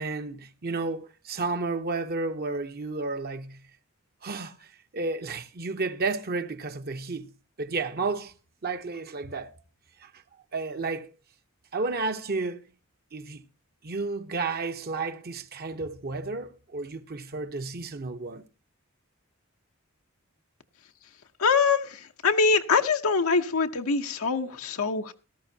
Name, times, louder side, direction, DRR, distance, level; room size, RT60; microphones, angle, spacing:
voice 1, 0.0-3.6 4.2-4.7 4.9-7.3 7.6-8.3 8.6-9.5 10.0-10.1 10.5-11.1 11.7-12.6 13.1-13.4 13.8-18.4, right 3 dB, 45° right, 0.9 m, -32 dB
voice 2, 21.4-25.1, left 4 dB, 80° left, 0.8 m, -24 dB
18.0 x 13.5 x 2.8 m
head